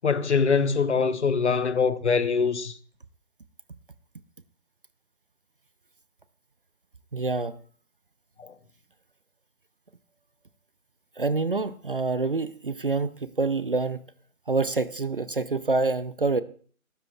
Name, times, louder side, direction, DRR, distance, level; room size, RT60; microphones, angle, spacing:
voice 1, 0.0-2.8 8.4-8.5, left 5 dB, 55° left, 0.9 m, -23 dB
voice 2, 7.1-7.5 11.2-14.0 14.5-16.4, right 3 dB, 40° right, 0.5 m, -26 dB
22.5 x 12.5 x 2.3 m
figure-of-eight pair, 145°, 42 cm